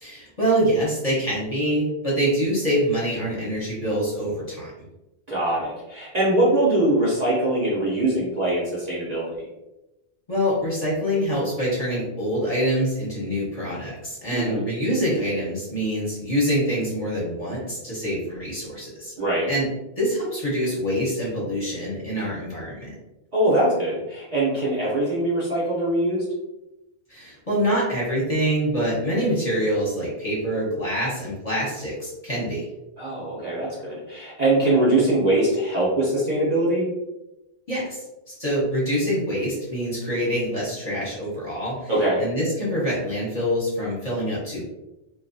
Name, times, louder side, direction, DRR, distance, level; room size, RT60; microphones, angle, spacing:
voice 1, 0.0-4.7 10.3-19.1 19.5-19.7 20.0-22.9 27.1-32.6 37.7-41.9 42.2-44.6, equal, 35° left, -7 dB, 1.0 m, -25 dB
voice 2, 5.3-9.5 14.3-14.7 19.2-19.5 23.3-26.2 33.0-36.8 41.9-42.2, right 1 dB, 40° right, -7 dB, 0.7 m, -22 dB
2.6 x 2.3 x 2.6 m, 0.97 s
omnidirectional pair, 1.2 m